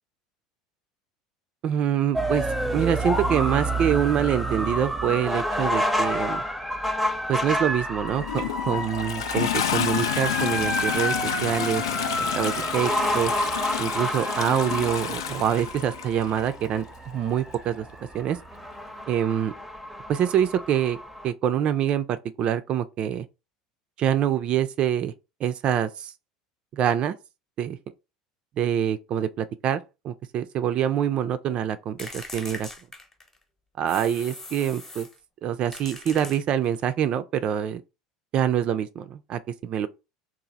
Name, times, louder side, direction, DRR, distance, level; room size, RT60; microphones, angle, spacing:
voice 1, 1.6-2.4 2.7-6.4 7.3-11.2 11.4-12.0 12.3-13.3 13.8-17.9 18.1-18.4 19.1-19.5 20.1-21.0 21.2-23.3 24.0-25.1 25.4-26.1 26.7-27.1 27.6-27.8 28.6-32.7 33.8-35.1 35.4-37.8 38.3-39.9, right 9 dB, 40° right, 0.3 m, -25 dB
sound 1, 2.1-21.3, equal, ahead, 0.6 m, -29 dB
Toilet flush, 8.1-16.5 17.5-17.6, left 10 dB, 70° left, 0.4 m, -30 dB
sound 2, 32.0-33.4 33.9-35.2 35.7-36.8, left 2 dB, 15° left, 0.9 m, -41 dB
3.0 x 2.4 x 3.9 m
figure-of-eight pair, 70°, 3 cm